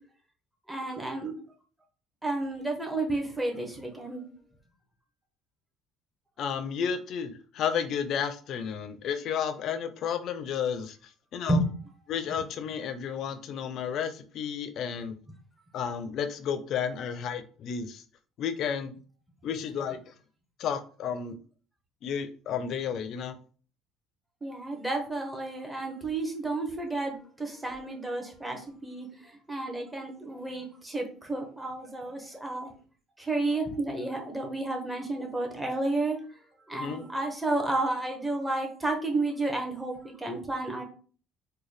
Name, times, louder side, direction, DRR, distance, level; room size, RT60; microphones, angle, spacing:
voice 1, 0.7-1.3 2.2-4.2 11.5-11.7 24.4-29.1 29.5-32.7 33.2-36.2 36.7-40.8, right 2 dB, 10° right, 1 dB, 1.0 m, -31 dB
voice 2, 6.4-11.0 11.3-11.6 12.1-15.2 15.7-18.0 18.4-18.9 19.4-20.1 20.6-21.4 22.0-23.4 36.7-37.0, left 7 dB, 55° left, 10 dB, 0.5 m, -32 dB
3.9 x 2.2 x 3.2 m, 0.41 s
cardioid pair, 110°, 0 cm